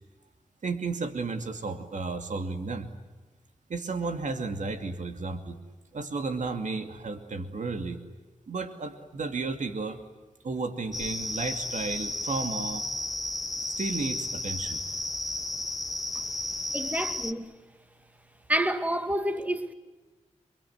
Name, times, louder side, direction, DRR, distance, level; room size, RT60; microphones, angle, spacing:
voice 1, 0.6-2.9 3.7-5.6 5.9-8.0 8.5-10.0 10.4-12.8 13.8-14.8, right 3 dB, 75° right, 2.5 m, -33 dB
sound 1, 10.9-17.3, left 1 dB, 30° left, 1.0 m, -33 dB
voice 2, 16.7-17.5 18.5-19.7, right 1 dB, 10° right, 2.1 m, -28 dB
29.5 x 23.5 x 8.0 m
wide cardioid pair, 75°, 13 cm